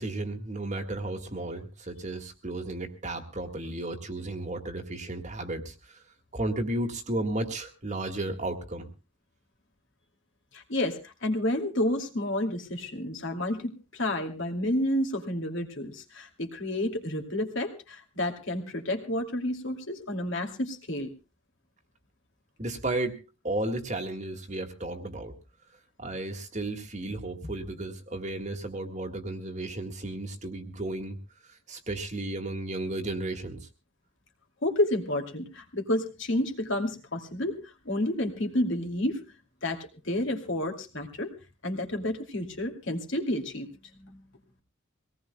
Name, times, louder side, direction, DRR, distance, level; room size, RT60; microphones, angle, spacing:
voice 1, 0.0-6.0 6.3-8.9 22.6-25.3 26.0-31.2 31.4-33.7, right 2 dB, 35° right, 5 dB, 1.8 m, -34 dB
voice 2, 10.5-21.1 34.6-37.6 37.8-39.2 39.6-41.3 41.6-43.7 43.9-44.2, left 1 dB, 55° left, 4 dB, 2.5 m, -30 dB
24.0 x 18.5 x 2.2 m, 0.30 s
head